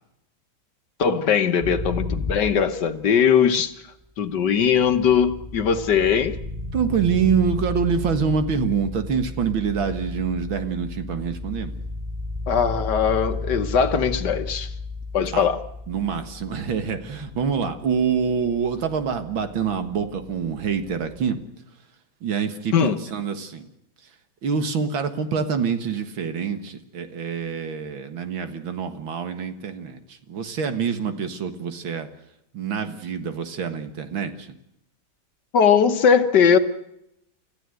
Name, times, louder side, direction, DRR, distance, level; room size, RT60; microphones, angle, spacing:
voice 1, 1.0-3.7 4.2-6.4 12.5-14.7 15.1-15.6 22.7-23.0 35.5-36.6, left 7 dB, 60° left, 9 dB, 1.6 m, -20 dB
sound 1, 1.6-3.3 4.4-21.3, left 3 dB, 5° right, 3.6 m, -34 dB
voice 2, 6.7-11.8 15.3-15.5 15.9-21.4 22.2-23.7 24.4-32.1 32.5-34.5, right 6 dB, 75° right, 8 dB, 2.4 m, -26 dB
29.5 x 14.5 x 7.9 m, 0.81 s
omnidirectional pair, 2.2 m